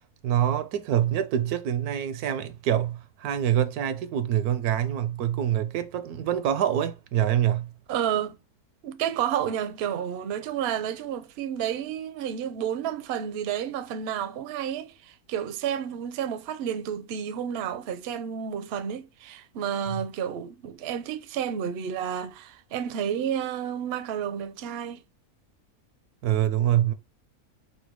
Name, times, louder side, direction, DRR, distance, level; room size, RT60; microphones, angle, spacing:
voice 1, 0.2-7.7 19.9-20.0 26.2-26.9, right 10 dB, 85° right, 1.1 m, -25 dB
voice 2, 7.9-8.4 8.8-25.0, right 9 dB, 60° right, 0.6 m, -31 dB
4.5 x 2.2 x 4.5 m
omnidirectional pair, 1.6 m